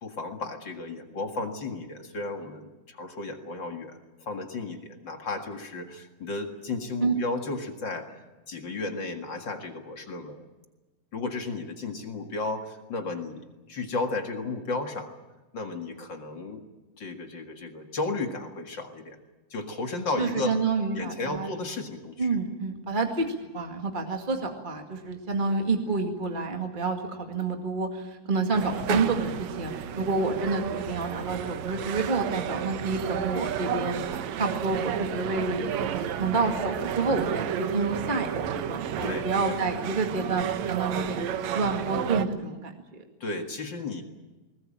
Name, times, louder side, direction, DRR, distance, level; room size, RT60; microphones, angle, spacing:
voice 1, 0.0-8.2 8.5-10.4 11.1-15.1 15.5-16.6 17.0-19.2 19.5-20.6 21.0-22.3 39.0-39.6 43.2-44.0, left 3 dB, 40° left, 5 dB, 2.1 m, -34 dB
voice 2, 20.2-21.5 22.2-41.2 41.5-43.0, right 3 dB, 20° right, 3 dB, 1.4 m, -29 dB
sound 1, 28.5-42.2, right 9 dB, 65° right, 2.0 m, -32 dB
22.0 x 20.0 x 8.9 m, 1.1 s
omnidirectional pair, 3.9 m